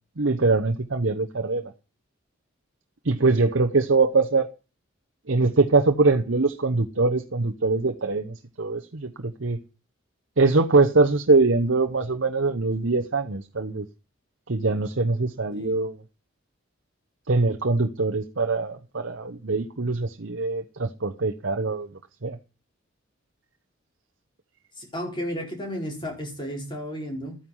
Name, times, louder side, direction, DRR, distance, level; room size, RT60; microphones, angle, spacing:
voice 1, 0.2-1.6 3.0-4.5 5.3-9.6 10.4-13.9 14.5-16.0 17.3-21.9 22.2-22.4, right 3 dB, 65° right, 1.0 m, -23 dB
voice 2, 24.8-27.4, equal, 25° left, 4.4 m, -33 dB
13.5 x 9.5 x 5.6 m
head